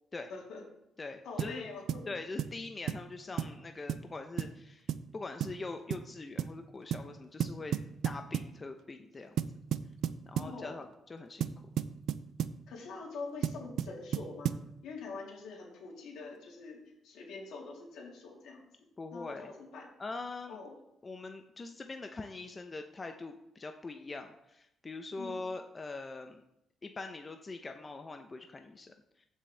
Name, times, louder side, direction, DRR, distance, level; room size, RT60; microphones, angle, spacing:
voice 1, 0.3-0.6 1.2-2.0 3.3-3.4 10.4-10.8 12.7-18.6 19.1-19.9 20.5-20.7 25.2-25.4, left 4 dB, 80° left, -2 dB, 3.2 m, -45 dB
voice 2, 1.0-1.7 2.1-7.8 8.0-9.4 10.3-11.5 19.0-19.5 20.0-20.6 21.0-26.4 26.8-29.3, left 3 dB, 30° left, 5 dB, 0.7 m, -43 dB
sound 1, 1.4-1.6 1.9-2.1 2.4-2.6 2.9-3.0 3.4-3.6 3.9-4.1 4.4-4.6 4.9-5.1 5.4-5.6 5.9-6.1 6.4-6.6 6.9-7.1 7.4-8.5 9.4-10.6 11.4-12.6 13.4-14.7, right 9 dB, 75° right, 0.5 m, -34 dB
14.5 x 6.3 x 3.4 m, 0.83 s
cardioid pair, 90°, 0 cm